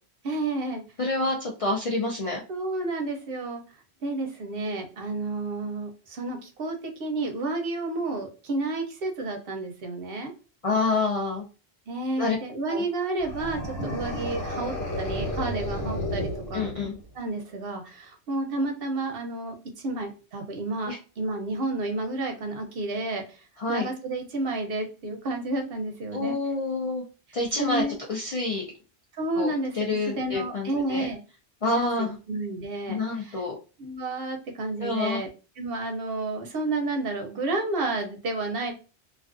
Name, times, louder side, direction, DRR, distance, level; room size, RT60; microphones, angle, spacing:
voice 1, 0.2-0.8 2.5-3.6 4.0-10.3 11.9-16.7 17.1-26.4 27.6-28.0 29.1-31.2 31.8-33.4 33.8-35.3 35.6-38.7, right 2 dB, 65° right, 4 dB, 0.8 m, -31 dB
voice 2, 1.0-2.4 10.6-11.4 12.2-12.4 12.7-12.8 16.5-17.0 20.9-21.0 23.6-23.9 26.1-27.0 27.3-27.8 28.1-28.6 29.4-31.1 31.6-32.2 32.9-33.6 34.8-35.2, left 2 dB, 50° left, -2 dB, 0.4 m, -27 dB
sound 1, 13.2-17.1, left 1 dB, 65° left, 1.1 m, -32 dB
2.3 x 2.3 x 2.4 m, 0.33 s
omnidirectional pair, 1.1 m